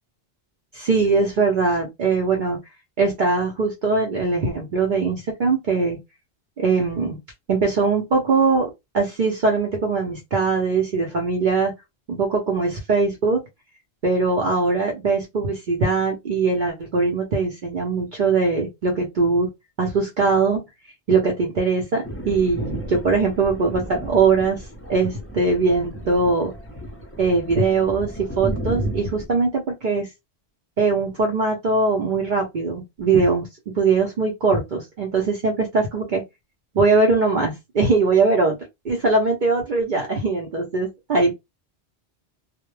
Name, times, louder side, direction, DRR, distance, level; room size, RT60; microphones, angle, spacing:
voice 1, 0.7-2.6 3.0-6.0 6.6-7.2 7.5-11.7 12.1-13.4 14.0-19.5 19.8-20.6 21.1-26.5 27.2-30.1 30.8-33.5 33.7-36.2 36.7-38.6 38.8-41.3, right 4 dB, 55° right, 0.6 m, -21 dB
Thunder, 22.0-29.3, right 1 dB, 20° left, 0.4 m, -33 dB
2.1 x 2.1 x 3.0 m
omnidirectional pair, 1.2 m